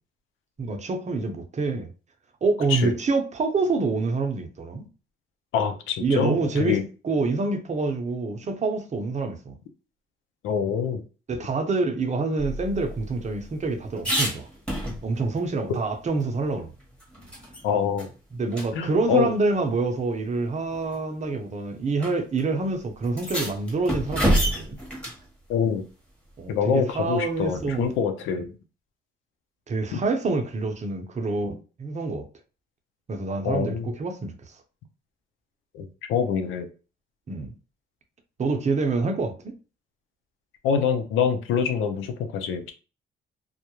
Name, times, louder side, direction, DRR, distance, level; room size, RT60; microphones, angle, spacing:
voice 1, 0.6-1.9 2.4-4.9 6.0-9.6 11.3-14.5 15.0-16.7 18.3-24.8 26.4-27.9 29.7-32.3 33.1-34.3 37.3-37.5 38.4-39.6, right 3 dB, 35° right, 0.6 m, -26 dB
voice 2, 5.5-6.8 10.4-11.0 17.6-18.1 18.7-19.3 25.5-25.8 26.5-28.5 29.9-30.0 33.4-33.9 35.7-36.7 40.6-42.7, left 7 dB, 90° left, 0.5 m, -25 dB
sound 1, 12.4-15.4 15.7-15.8 16.2-17.6 18.0-18.1 18.5-18.7 19.7-19.8 20.7-21.0 22.0-22.1 22.4-22.5 23.0-25.2 27.5-28.0, equal, 5° left, 1.1 m, -29 dB
2.3 x 2.0 x 2.9 m
cardioid pair, 90°, 20 cm